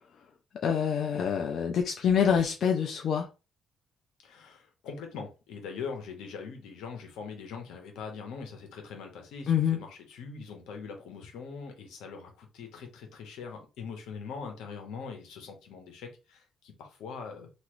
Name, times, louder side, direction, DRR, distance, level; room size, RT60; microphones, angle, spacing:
voice 1, 0.6-3.3 9.5-9.8, left 7 dB, 60° left, 0.5 m, -26 dB
voice 2, 4.2-17.5, left 5 dB, 90° left, 0.9 m, -42 dB
3.0 x 2.5 x 3.0 m
cardioid pair, 90°, 0 cm